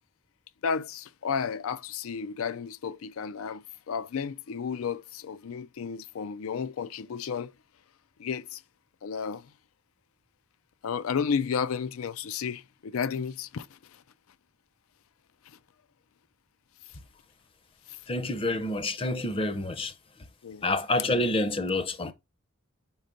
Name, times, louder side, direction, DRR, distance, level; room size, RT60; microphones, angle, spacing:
voice 1, 0.6-7.5 8.2-8.6 9.0-9.5 10.8-13.7 20.4-20.6, left 6 dB, 80° left, 0.4 m, -32 dB
voice 2, 18.1-19.9 20.6-22.1, left 2 dB, 25° left, 0.6 m, -28 dB
5.2 x 3.9 x 5.1 m
head